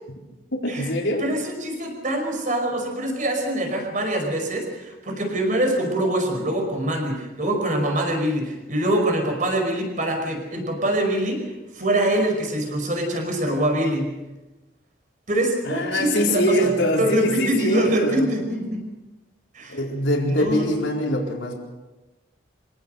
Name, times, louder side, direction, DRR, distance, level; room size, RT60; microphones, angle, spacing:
voice 1, 0.6-1.3 15.6-18.3 19.7-21.5, equal, 75° left, -1 dB, 4.4 m, -23 dB
voice 2, 1.2-11.5 11.7-14.1 15.3-16.7 17.0-18.9 19.5-19.8 20.3-20.7 21.0-21.1, right 1 dB, 40° right, 3 dB, 5.1 m, -24 dB
26.0 x 18.0 x 6.6 m, 1.1 s
head